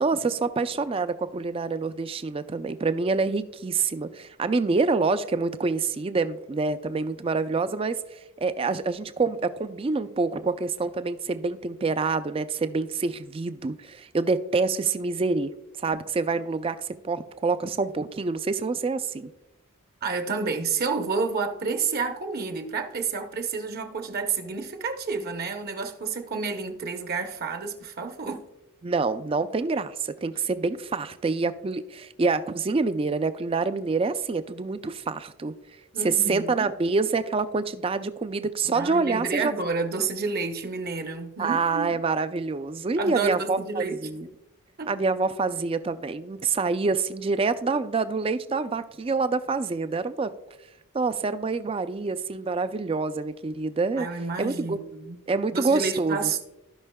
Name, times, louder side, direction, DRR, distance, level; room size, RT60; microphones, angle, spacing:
voice 1, 0.0-15.5 15.8-19.3 28.8-35.5 36.0-39.5 41.4-44.3 44.9-50.3 50.9-54.1 54.4-54.8 55.3-56.4, right 4 dB, 25° right, 0.3 m, -26 dB
voice 2, 20.0-28.4 35.9-36.7 38.7-41.9 43.0-44.0 44.8-44.9 54.0-55.2 55.5-56.4, right 4 dB, 45° right, 0.8 m, -30 dB
15.0 x 5.4 x 2.2 m
head